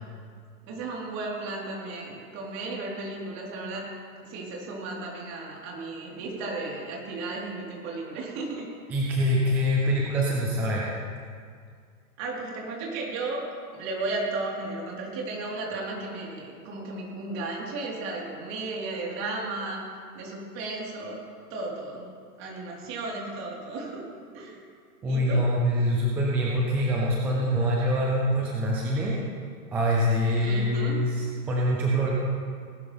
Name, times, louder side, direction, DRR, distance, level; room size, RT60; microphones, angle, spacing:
voice 1, 0.7-3.9 4.2-8.7 12.2-13.5 13.7-19.8 20.1-21.2 21.5-22.1 22.4-24.1 24.3-24.6 25.1-25.4 27.6-27.7 30.4-30.9, right 3 dB, 35° right, -3 dB, 4.0 m, -34 dB
voice 2, 8.9-10.9 25.0-29.2 29.7-32.1, equal, 5° right, -4 dB, 0.3 m, -24 dB
19.0 x 12.5 x 3.5 m, 2.1 s
hypercardioid pair, 130°, 46 cm